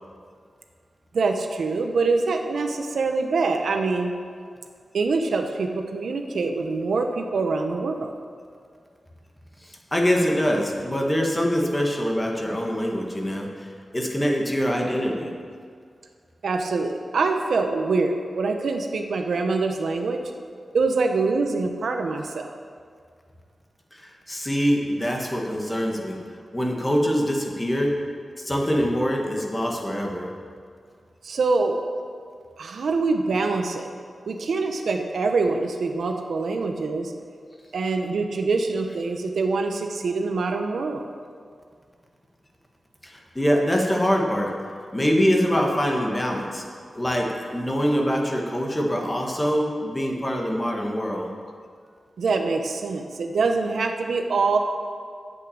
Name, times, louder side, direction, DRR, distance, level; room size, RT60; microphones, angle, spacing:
voice 1, 1.1-4.1 4.9-8.1 16.4-20.2 20.7-22.5 31.2-31.8 32.6-33.9 34.3-37.1 37.7-41.0 52.2-54.6, right 3 dB, 80° right, 4 dB, 0.9 m, -24 dB
voice 2, 9.6-15.3 23.9-26.2 26.5-27.9 28.4-30.3 43.0-44.5 44.9-46.6 46.9-51.3, equal, 15° left, 0 dB, 1.6 m, -24 dB
8.2 x 8.2 x 7.2 m, 2.1 s
wide cardioid pair, 85°, 0 cm